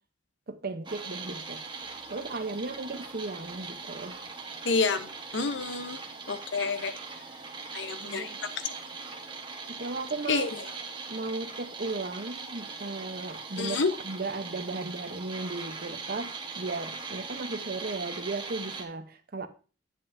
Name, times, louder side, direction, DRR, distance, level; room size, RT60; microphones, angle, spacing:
voice 1, 0.5-1.6 2.1-4.2 7.9-8.4 9.7-10.7 11.1-13.8 14.0-19.5, right 3 dB, 50° right, 0.8 m, -36 dB
sound 1, 0.8-18.8, right 4 dB, 25° right, 1.1 m, -41 dB
voice 2, 4.6-6.0 6.3-6.9 7.7-8.8 10.2-10.6 13.6-13.9, left 4 dB, 70° left, 0.8 m, -29 dB
9.2 x 7.8 x 2.6 m
head